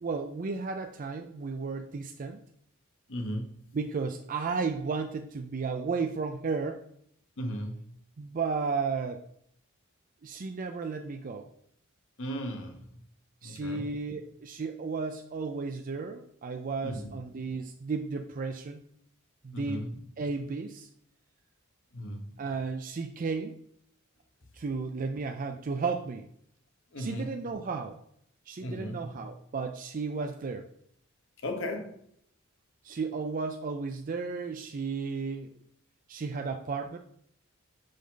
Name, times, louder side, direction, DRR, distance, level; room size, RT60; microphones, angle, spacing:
voice 1, 0.0-2.4 3.7-6.9 8.2-9.2 10.2-11.5 13.4-18.8 19.4-19.8 20.2-20.9 22.4-23.6 24.5-26.3 27.0-28.0 28.5-30.7 32.8-35.5 36.1-37.0, right 4 dB, 40° right, 0.4 m, -33 dB
voice 2, 3.1-3.7 7.4-7.9 12.2-12.9 13.4-14.1 16.8-17.1 19.5-20.1 21.9-22.4 26.9-27.3 28.6-29.2 31.4-32.0, equal, 65° left, 1.1 m, -36 dB
6.5 x 5.1 x 3.9 m
head